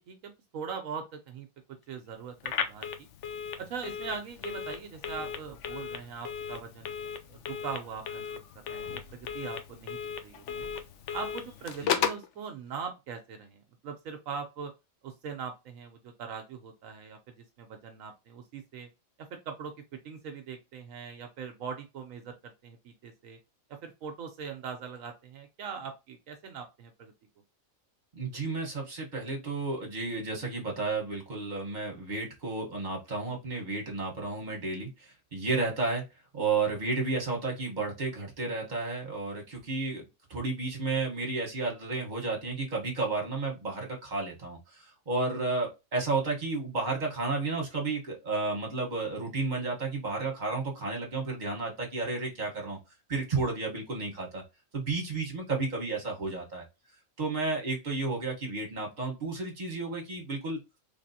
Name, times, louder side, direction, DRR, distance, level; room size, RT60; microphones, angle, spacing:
voice 1, 0.1-1.5 1.9-3.1 3.6-6.9 7.3-10.7 11.1-14.7 15.0-18.9 19.2-19.7 20.0-23.4 23.8-27.1, right 6 dB, 75° right, 5 dB, 1.0 m, -41 dB
Telephone, 2.4-12.3, left 7 dB, 65° left, 0.8 m, -36 dB
voice 2, 28.1-36.0 36.3-52.8 53.1-54.4 54.7-56.6 57.2-60.6, right 3 dB, 35° right, 0 dB, 1.2 m, -32 dB
3.5 x 3.3 x 2.7 m, 0.25 s
omnidirectional pair, 1.5 m